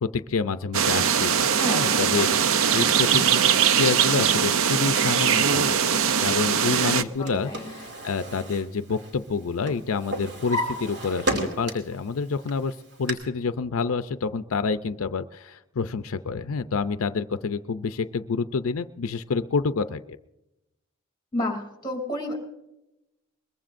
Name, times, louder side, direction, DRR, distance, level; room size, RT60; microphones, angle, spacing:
voice 1, 0.0-3.5 3.7-20.0, left 5 dB, 80° left, 11 dB, 0.5 m, -28 dB
sound 1, 0.7-7.0, right 7 dB, 75° right, 0.6 m, -21 dB
voice 2, 1.6-2.1 7.0-7.6 21.3-22.4, left 1 dB, 20° left, 2 dB, 3.0 m, -31 dB
Drawer open or close, 6.9-9.4 9.7-12.0 12.4-13.1, equal, 55° right, 2.6 m, -32 dB
22.0 x 21.5 x 2.6 m, 0.91 s
head